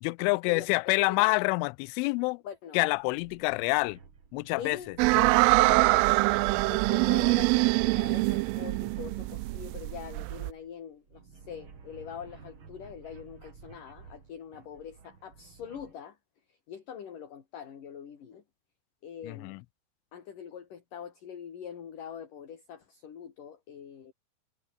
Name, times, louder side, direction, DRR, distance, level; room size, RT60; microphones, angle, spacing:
voice 1, 0.0-2.4 2.7-4.0 4.3-4.8 19.2-19.6, left 29 dB, 85° left, 2.9 m, -27 dB
voice 2, 1.0-1.4 2.4-2.8 4.6-6.1 6.7-16.2 16.5-18.4 19.0-19.6 20.1-24.1, left 8 dB, 45° left, 4.1 m, -43 dB
sound 1, 2.9-15.9, right 5 dB, 35° right, 2.4 m, -52 dB
sound 2, 5.0-10.5, right 24 dB, 85° right, 3.1 m, -24 dB
omnidirectional pair, 5.9 m